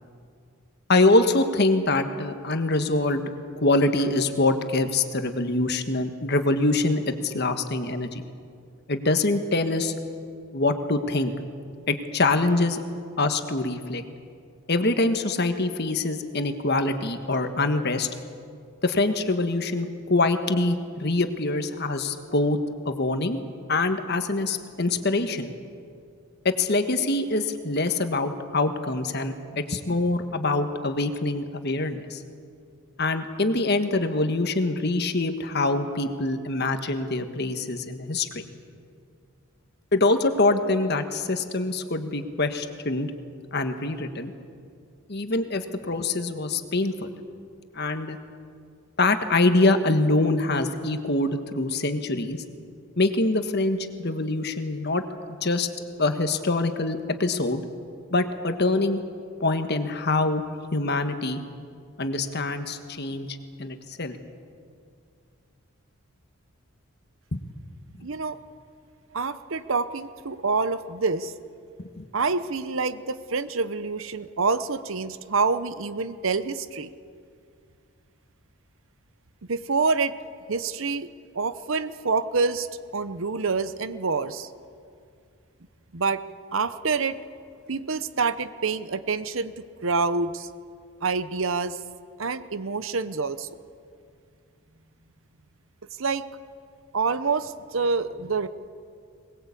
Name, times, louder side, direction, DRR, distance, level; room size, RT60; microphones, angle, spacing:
voice 1, 0.9-3.3 3.6-8.2 8.9-9.9 10.5-11.3 11.9-12.8 13.2-14.0 14.7-18.1 18.8-22.6 22.8-23.4 23.7-25.5 26.4-32.2 33.0-38.4 39.9-43.1 43.5-44.3 45.1-47.1 47.7-48.2 49.0-52.4 53.0-55.0 55.4-55.7 56.0-57.6 58.1-59.0 59.4-60.4 60.7-61.4 62.0-64.2 67.3-67.4 72.0-72.1, left 2 dB, 50° left, 8 dB, 1.5 m, -24 dB
voice 2, 68.0-68.4 69.1-71.3 72.1-76.9 79.5-80.1 80.5-81.1 81.3-82.7 82.9-84.5 85.9-86.2 86.5-87.2 87.7-90.5 91.0-91.8 92.2-93.5 96.0-96.2 96.9-98.5, right 4 dB, 65° right, 13 dB, 0.8 m, -27 dB
21.5 x 20.5 x 8.4 m, 2.3 s
head